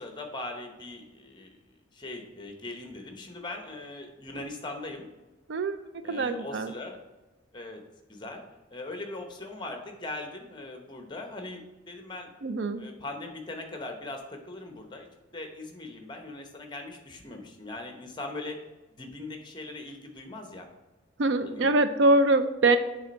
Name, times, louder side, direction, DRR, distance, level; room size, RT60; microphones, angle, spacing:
voice 1, 0.0-1.6 1.9-5.1 6.0-7.0 7.5-7.8 8.1-8.4 8.7-11.6 11.9-12.3 12.8-15.1 15.3-18.6 19.0-20.7 21.4-21.8, left 2 dB, 20° left, 4 dB, 0.8 m, -40 dB
voice 2, 6.1-6.7 12.4-12.8 21.2-22.8, right 2 dB, 60° right, 11 dB, 0.4 m, -23 dB
7.1 x 3.4 x 5.1 m, 1.1 s
head